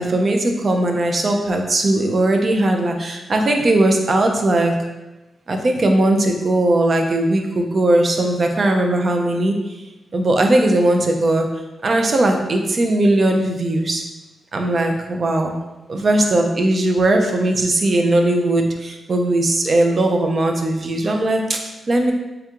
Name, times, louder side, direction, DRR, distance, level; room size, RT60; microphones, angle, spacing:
voice 1, 0.0-4.8 5.5-9.5 10.1-11.5 11.8-14.0 14.5-15.6 15.9-22.1, right 1 dB, 35° right, 3 dB, 0.5 m, -18 dB
3.4 x 2.9 x 3.5 m, 1.0 s
wide cardioid pair, 145°, 0 cm